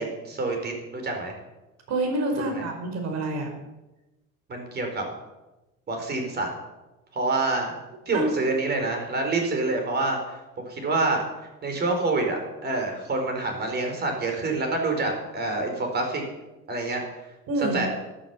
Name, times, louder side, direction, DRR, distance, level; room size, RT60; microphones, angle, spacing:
voice 1, 0.0-1.3 2.4-2.6 4.5-5.0 5.9-6.5 7.1-7.7 8.1-11.2 11.6-16.2 16.7-17.0 17.6-17.9, right 3 dB, 30° right, 3 dB, 4.6 m, -27 dB
voice 2, 1.9-3.5 8.1-8.3 17.5-17.8, right 2 dB, 55° right, 3 dB, 4.8 m, -27 dB
13.5 x 13.0 x 7.3 m, 1.0 s
cardioid pair, 150°, 32 cm